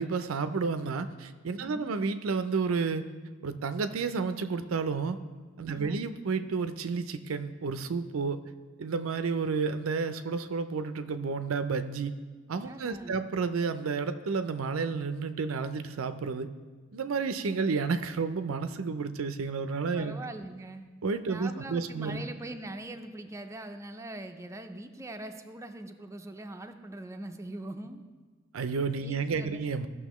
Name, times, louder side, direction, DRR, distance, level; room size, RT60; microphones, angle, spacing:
voice 1, 0.0-3.1 3.4-5.2 5.6-8.4 8.8-12.1 12.5-16.5 16.9-20.2 21.0-22.2 28.5-29.9, right 4 dB, 85° right, 10 dB, 0.5 m, -31 dB
voice 2, 1.6-1.9 5.7-6.0 12.6-13.2 19.9-20.9 21.3-28.0 29.0-29.6, right 2 dB, 15° right, 6 dB, 0.4 m, -42 dB
14.5 x 6.1 x 3.0 m, 1.4 s
head